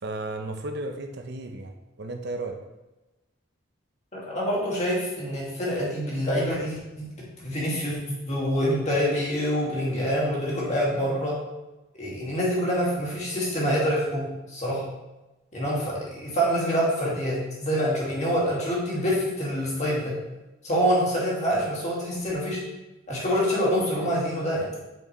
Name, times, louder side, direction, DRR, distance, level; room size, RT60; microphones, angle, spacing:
voice 1, 0.0-2.6, right 2 dB, 55° right, 4 dB, 0.6 m, -34 dB
voice 2, 4.1-11.4 12.0-14.9 15.5-20.2 20.6-22.6 23.1-24.7, equal, 35° left, -6 dB, 2.1 m, -26 dB
7.4 x 5.1 x 3.2 m, 1.1 s
head